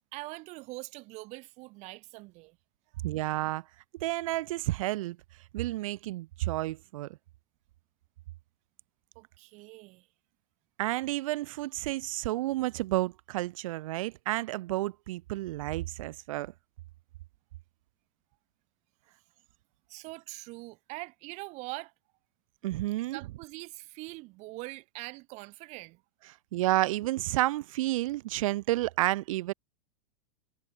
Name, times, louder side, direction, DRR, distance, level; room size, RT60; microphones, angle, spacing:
voice 1, 0.1-2.6 9.2-10.1 19.9-21.9 23.1-26.0, right 24 dB, 35° right, 5.7 m, -43 dB
voice 2, 3.0-3.6 4.0-5.2 5.5-7.1 10.8-16.5 22.6-23.2 26.5-29.5, right 17 dB, 55° right, 1.9 m, -30 dB
supercardioid pair, 165°, 21 cm